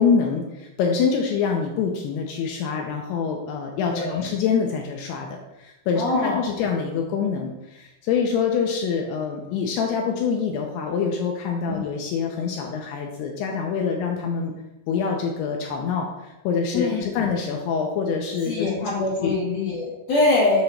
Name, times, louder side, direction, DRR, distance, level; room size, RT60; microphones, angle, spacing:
voice 1, 0.0-14.5 14.9-18.7 19.0-19.3, left 6 dB, 85° left, 1 dB, 2.3 m, -25 dB
voice 2, 3.9-4.3 6.0-6.4 11.7-11.8 16.7-17.1 18.4-20.6, left 2 dB, 60° left, -8 dB, 2.3 m, -23 dB
7.7 x 2.9 x 5.6 m, 0.95 s
omnidirectional pair, 5.4 m